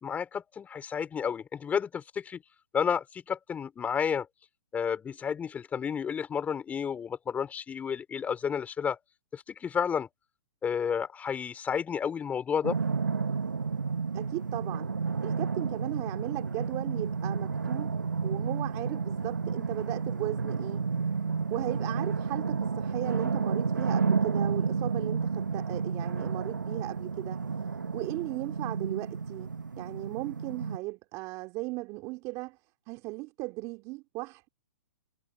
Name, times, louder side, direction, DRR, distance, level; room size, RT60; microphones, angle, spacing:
voice 1, 0.0-2.4 2.7-4.3 4.7-9.0 9.3-10.1 10.6-12.8, left 7 dB, 15° left, 3.9 m, -31 dB
sound 1, 12.6-30.8, right 5 dB, 90° right, 1.2 m, -31 dB
voice 2, 14.1-14.9 15.2-17.9 18.2-20.8 21.5-27.4 27.9-29.5 29.8-32.6 32.9-34.5, right 23 dB, 35° right, 2.6 m, -37 dB
hypercardioid pair, 125°, 10 cm